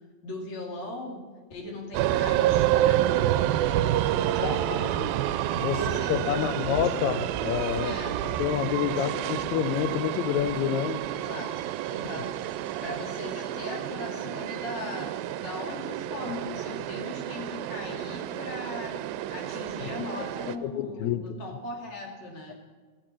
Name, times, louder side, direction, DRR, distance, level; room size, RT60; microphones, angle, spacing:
voice 1, 0.2-1.2 1.5-3.1 4.1-5.2 5.7-7.0 7.8-8.2 8.9-9.2 11.1-11.5 11.9-12.3 12.8-15.1 15.4-19.0 19.3-22.5, left 2 dB, 50° left, 0 dB, 3.8 m, -39 dB
sound 1, 1.9-20.6, right 13 dB, 85° right, 2.4 m, -29 dB
voice 2, 4.4-4.9 5.5-5.8 6.1-7.9 8.4-11.0 20.6-21.4, left 10 dB, 85° left, 11 dB, 1.6 m, -28 dB
14.5 x 14.0 x 6.3 m, 1.4 s
omnidirectional pair, 4.1 m